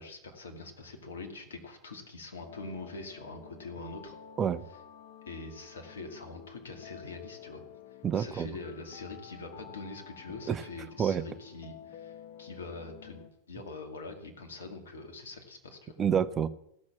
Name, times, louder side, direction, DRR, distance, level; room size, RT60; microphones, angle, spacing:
voice 1, 0.0-4.2 5.3-7.6 8.1-16.0, left 3 dB, 65° left, 4 dB, 2.3 m, -44 dB
sound 1, 2.4-13.3, left 9 dB, 45° left, 1.3 m, -51 dB
voice 2, 8.0-8.5 10.5-10.6 11.0-11.2 16.0-16.5, right 8 dB, 25° right, 13 dB, 0.6 m, -27 dB
15.5 x 6.4 x 7.2 m, 0.78 s
figure-of-eight pair, 90°, 0 cm